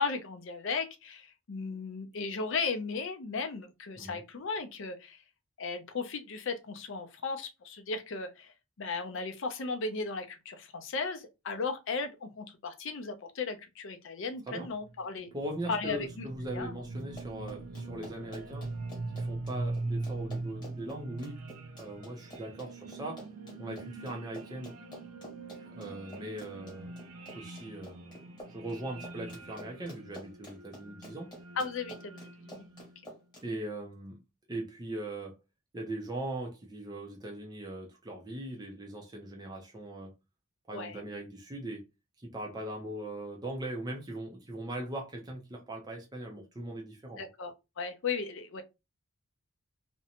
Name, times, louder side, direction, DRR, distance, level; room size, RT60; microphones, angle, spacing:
voice 1, 0.0-5.2 5.6-15.3 15.7-16.3 16.5-16.7 31.6-32.6 40.7-41.0 47.2-48.6, left 4 dB, 55° left, 0.5 m, -36 dB
sound 1, 14.8-33.1, right 2 dB, 85° right, 0.5 m, -42 dB
voice 2, 15.3-18.7 19.1-21.4 21.8-23.2 23.6-24.7 25.6-26.9 27.3-31.3 33.4-34.2 34.5-35.4 35.7-40.1 40.7-41.8 42.2-47.3, right 1 dB, 20° right, 0.5 m, -40 dB
Run, 17.0-33.4, equal, 20° left, 1.2 m, -49 dB
2.5 x 2.1 x 2.8 m
head